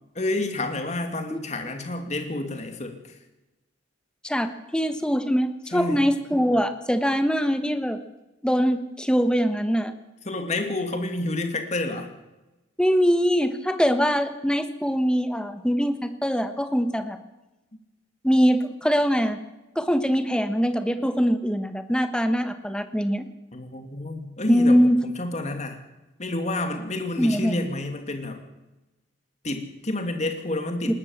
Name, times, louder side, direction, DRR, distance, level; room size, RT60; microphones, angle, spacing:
voice 1, 0.1-3.0 5.7-6.0 10.2-12.1 23.5-24.8 25.0-25.8 26.2-28.4 29.4-31.0, left 2 dB, 35° left, 5 dB, 2.6 m, -29 dB
voice 2, 4.2-8.0 8.4-9.9 12.8-17.2 18.2-19.4 19.7-23.3 24.5-24.9 27.2-27.6 30.9-31.0, equal, 5° left, 9 dB, 1.2 m, -23 dB
20.0 x 18.5 x 7.3 m, 1.0 s
head